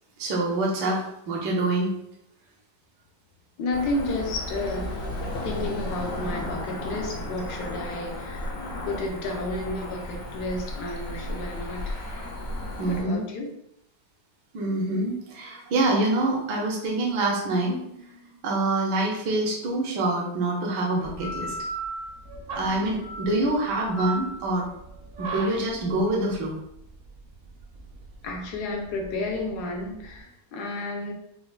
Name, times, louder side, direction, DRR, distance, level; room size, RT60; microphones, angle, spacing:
voice 1, 0.2-1.9 12.8-13.2 14.5-21.5 22.5-24.6 25.2-26.5, right 2 dB, 80° right, -1 dB, 1.3 m, -26 dB
voice 2, 3.6-4.9 5.4-8.5 8.8-12.0 12.8-13.5 28.2-31.1, left 2 dB, 75° left, 0 dB, 1.2 m, -31 dB
Cricket / Motor vehicle (road), 3.7-13.0, left 1 dB, 60° left, 0.7 m, -34 dB
sound 1, 21.0-30.2, right 2 dB, 65° right, 0.9 m, -37 dB
4.5 x 2.1 x 2.3 m, 0.78 s
omnidirectional pair, 1.8 m